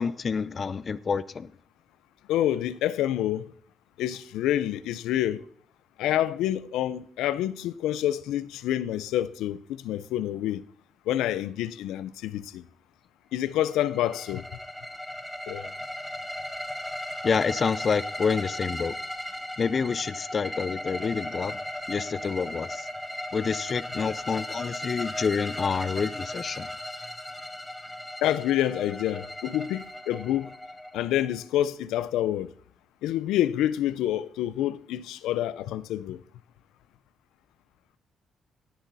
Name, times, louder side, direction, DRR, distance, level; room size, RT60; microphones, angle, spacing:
voice 1, 0.0-1.5 17.2-18.9 19.6-21.6 21.9-22.9 23.3-26.7, left 5 dB, 40° left, 0.7 m, -28 dB
voice 2, 2.3-3.5 4.0-5.4 6.0-10.6 11.1-12.6 13.3-14.4 15.5-15.7 28.2-30.5 30.9-32.5 33.0-36.2, left 12 dB, 90° left, 0.6 m, -27 dB
sound 1, 13.6-31.4, left 1 dB, 10° left, 1.6 m, -37 dB
17.5 x 10.5 x 4.1 m
cardioid pair, 90°, 0 cm